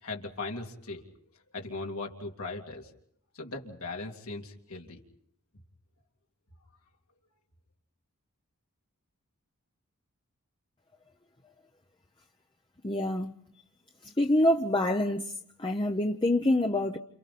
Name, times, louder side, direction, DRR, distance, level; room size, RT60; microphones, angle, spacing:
voice 1, 0.0-1.0 1.5-2.9 3.3-5.0, left 3 dB, 80° left, 2.8 m, -38 dB
voice 2, 12.8-13.3 14.2-15.3 15.6-17.0, left 1 dB, 20° left, 0.8 m, -26 dB
29.5 x 28.5 x 4.3 m
head